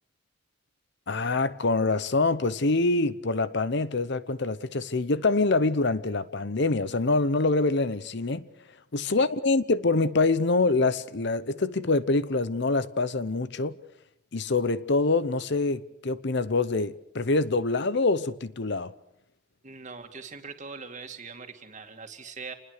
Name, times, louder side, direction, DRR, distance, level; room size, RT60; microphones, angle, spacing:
voice 1, 1.1-8.5 8.9-13.7 14.3-18.9, left 3 dB, 55° left, 0.8 m, -25 dB
voice 2, 19.6-22.5, right 4 dB, 35° right, 2.4 m, -42 dB
28.0 x 20.5 x 6.6 m
head